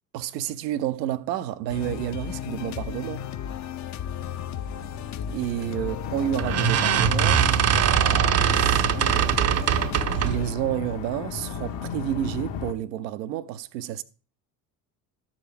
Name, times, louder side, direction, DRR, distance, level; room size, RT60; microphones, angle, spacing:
voice 1, 0.1-3.3 5.3-14.0, right 12 dB, 90° right, 0.6 m, -31 dB
sound 1, 1.7-11.9, left 9 dB, 35° left, 0.5 m, -35 dB
sound 2, 5.6-5.9 6.4-10.5, right 10 dB, 35° right, 0.5 m, -22 dB
sound 3, 6.0-12.7, left 7 dB, 55° left, 1.0 m, -34 dB
13.0 x 4.9 x 3.4 m
hypercardioid pair, 60°, 49 cm